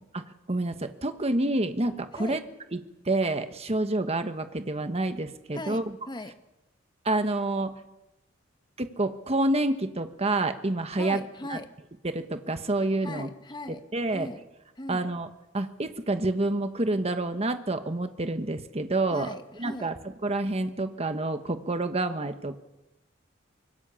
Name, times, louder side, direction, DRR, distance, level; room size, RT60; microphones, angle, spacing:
voice 1, 0.5-2.4 2.7-2.8 3.0-5.9 7.0-7.7 8.8-11.2 11.5-11.6 12.0-13.3 13.7-14.3 14.9-15.3 15.5-19.9 20.2-22.6, right 2 dB, 30° right, 8 dB, 1.2 m, -28 dB
voice 2, 5.5-6.3 11.0-11.7 13.0-13.8 14.1-14.4 14.8-15.1 19.1-19.9, left 1 dB, 20° left, 8 dB, 1.5 m, -39 dB
25.0 x 23.0 x 7.0 m, 0.99 s
head